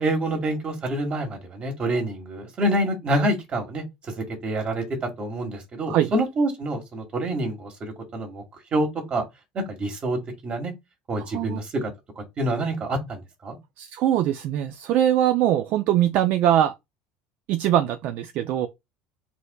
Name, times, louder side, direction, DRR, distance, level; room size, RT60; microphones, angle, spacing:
voice 1, 0.0-8.4 8.7-9.2 9.5-10.7 11.1-11.9 12.1-13.6, right 1 dB, 35° right, 1.5 m, -27 dB
voice 2, 13.8-16.7 17.5-18.7, right 11 dB, 60° right, 0.3 m, -22 dB
4.1 x 2.6 x 2.2 m
supercardioid pair, 95°, 3 cm